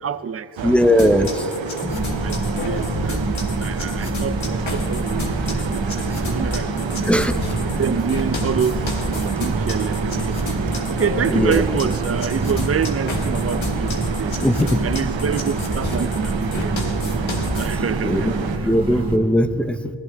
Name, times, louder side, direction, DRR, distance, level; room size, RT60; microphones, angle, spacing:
voice 1, 0.0-0.7 1.0-1.2 2.2-2.4 2.6-5.4 5.6-7.2 7.8-10.6 10.9-14.4 14.8-16.9 17.6-19.1, right 7 dB, 35° right, 0.4 m, -27 dB
voice 2, 0.6-1.5 1.8-2.0 7.1-7.4 11.3-11.6 14.4-14.8 18.0-18.3 18.6-19.9, equal, 5° left, 0.7 m, -19 dB
sound 1, 0.6-18.6, right 8 dB, 75° right, 0.7 m, -30 dB
sound 2, 1.0-17.8, left 2 dB, 85° left, 1.8 m, -31 dB
sound 3, 1.9-19.2, right 2 dB, 50° right, 2.0 m, -26 dB
19.5 x 14.5 x 3.4 m
wide cardioid pair, 65°, 46 cm